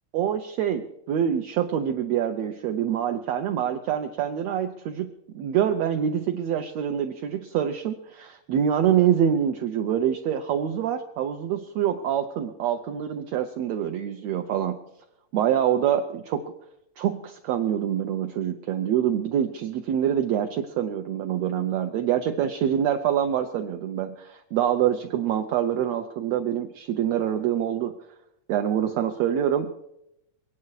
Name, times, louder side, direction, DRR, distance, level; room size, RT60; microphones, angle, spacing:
voice 1, 0.1-14.8 15.3-16.5 17.0-27.9 28.5-29.7, right 9 dB, 75° right, 5 dB, 1.6 m, -25 dB
22.5 x 9.7 x 4.7 m, 0.84 s
omnidirectional pair, 3.7 m